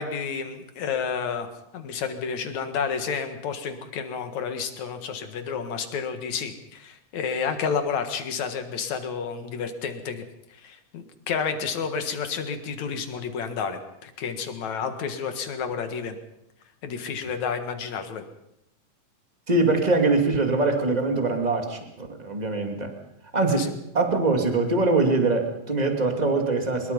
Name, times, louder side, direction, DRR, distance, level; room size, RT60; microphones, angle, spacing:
voice 1, 0.0-1.5 1.7-10.2 10.5-16.2 16.8-18.2 23.5-23.7, left 6 dB, 65° left, 8 dB, 2.9 m, -30 dB
voice 2, 19.5-22.9 23.3-23.7 23.9-26.9, right 3 dB, 15° right, 4 dB, 2.2 m, -23 dB
24.0 x 22.0 x 5.4 m, 0.81 s
omnidirectional pair, 3.6 m